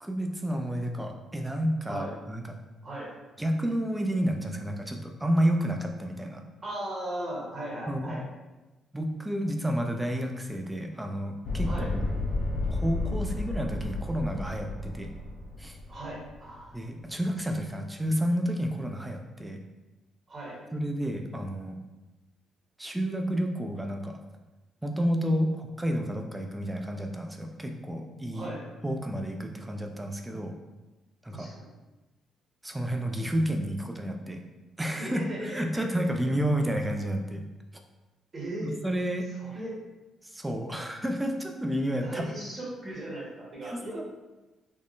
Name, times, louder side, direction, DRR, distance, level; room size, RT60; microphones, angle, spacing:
voice 1, 0.0-2.4 3.4-6.4 7.9-8.1 8.9-12.1 12.7-15.1 15.6-15.8 16.7-19.6 20.7-21.8 22.8-24.2 24.8-28.5 28.8-30.5 31.2-31.5 32.6-34.4 34.8-37.4 38.6-39.3 40.2-42.2 43.6-44.0, equal, 10° right, 3 dB, 0.4 m, -30 dB
voice 2, 2.8-3.1 6.6-8.2 11.7-11.9 15.9-16.8 20.3-20.6 28.3-28.6 31.3-31.7 34.9-35.6 38.3-38.7 39.4-39.8 42.0-44.0, right 1 dB, 40° right, -5 dB, 1.2 m, -37 dB
sound 1, 11.4-16.6, left 2 dB, 65° left, 0.5 m, -32 dB
3.5 x 2.1 x 2.5 m, 1.1 s
cardioid pair, 90°, 0 cm